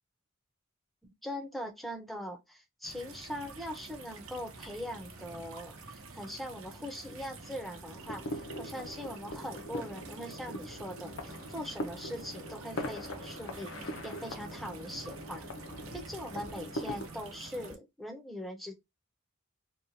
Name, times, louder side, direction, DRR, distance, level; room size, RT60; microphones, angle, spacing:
voice 1, 1.2-15.5 15.9-18.7, equal, ahead, 0.5 m, -41 dB
sound 1, 2.8-17.8, right 3 dB, 80° right, 0.7 m, -48 dB
sound 2, 7.9-17.1, left 1 dB, 65° left, 0.5 m, -42 dB
2.8 x 2.2 x 2.5 m
head